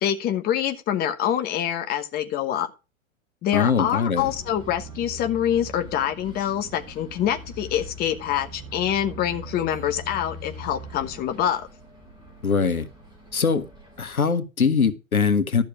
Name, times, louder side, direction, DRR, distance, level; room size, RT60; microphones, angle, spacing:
voice 1, 0.0-2.7 3.4-11.7, left 10 dB, 20° left, 1.2 m, -25 dB
voice 2, 3.5-4.3 12.4-12.9 13.3-13.6 14.0-15.6, left 5 dB, 85° left, 1.4 m, -22 dB
Bus, 4.2-14.2, right 1 dB, 10° right, 4.9 m, -41 dB
12.5 x 6.6 x 4.9 m
figure-of-eight pair, 110°, 42 cm